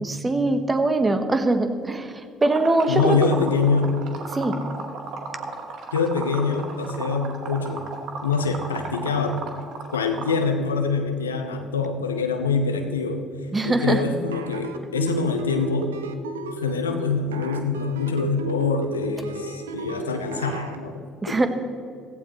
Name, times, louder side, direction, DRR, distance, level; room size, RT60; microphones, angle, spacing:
voice 1, 0.0-3.3 4.3-4.6 13.5-14.0 21.2-21.5, right 2 dB, 20° right, 8 dB, 1.3 m, -22 dB
Liquid, 2.4-10.4, right 4 dB, 55° right, 2.0 m, -35 dB
voice 2, 2.9-3.9 5.9-7.9 8.2-9.4 9.9-13.2 13.6-15.9 16.5-21.3, left 5 dB, 85° left, 6 dB, 1.0 m, -25 dB
sound 1, 14.2-20.8, right 5 dB, 80° right, 0.8 m, -33 dB
16.0 x 15.0 x 3.2 m, 2.4 s
figure-of-eight pair, 55°, 0 cm